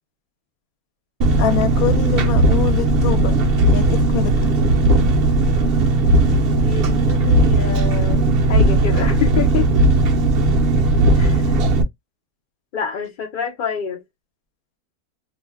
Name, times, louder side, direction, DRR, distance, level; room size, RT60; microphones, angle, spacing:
Engine, 1.2-11.8, right 2 dB, 60° right, 0.6 m, -16 dB
voice 1, 1.4-3.4 3.7-4.5, left 11 dB, 80° left, 1.0 m, -24 dB
voice 2, 6.6-9.7 11.2-11.5 12.7-14.0, left 7 dB, 60° left, 0.5 m, -27 dB
2.6 x 2.1 x 3.2 m
omnidirectional pair, 1.5 m